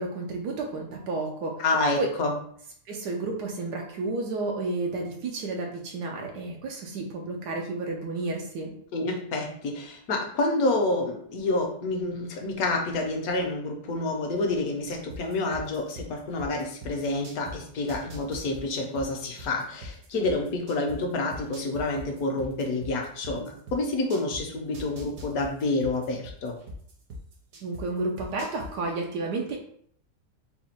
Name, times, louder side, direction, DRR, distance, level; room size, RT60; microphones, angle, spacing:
voice 1, 0.0-1.6 2.0-2.1 2.9-8.8 27.6-29.6, right 3 dB, 85° right, 0 dB, 1.3 m, -31 dB
voice 2, 1.6-2.3 8.9-26.6, left 2 dB, 65° left, 2 dB, 1.2 m, -28 dB
sound 1, 15.1-17.5 17.9-21.0 21.3-24.4 24.7-27.8 28.2-28.7, left 1 dB, 65° right, 1.3 m, -40 dB
4.2 x 2.3 x 4.2 m, 0.63 s
omnidirectional pair, 1.8 m